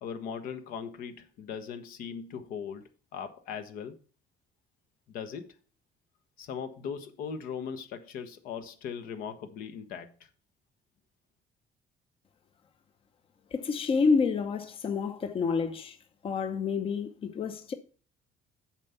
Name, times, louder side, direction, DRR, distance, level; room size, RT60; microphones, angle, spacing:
voice 1, 0.0-4.0 5.1-5.6 6.4-10.3, left 7 dB, 75° left, 1.1 m, -39 dB
voice 2, 13.5-16.0 16.2-17.7, left 5 dB, 40° left, 0.8 m, -28 dB
7.4 x 4.5 x 6.8 m
cardioid pair, 105°, 15 cm